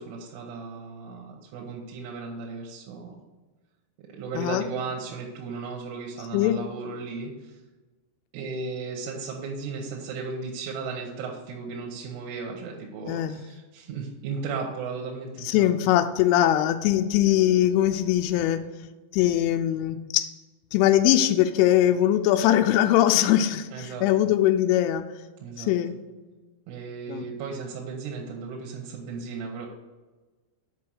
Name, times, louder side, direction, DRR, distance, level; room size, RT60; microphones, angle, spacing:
voice 1, 0.0-3.2 4.1-7.6 8.3-16.0 23.7-24.3 25.4-25.7 26.7-29.7, right 4 dB, 85° right, -1 dB, 3.5 m, -35 dB
voice 2, 13.1-13.4 15.5-18.6 19.1-20.3 20.7-25.0 25.6-25.9 27.1-27.3, left 12 dB, 90° left, 8 dB, 3.1 m, -21 dB
7.5 x 5.7 x 6.3 m, 1.2 s
omnidirectional pair, 5.5 m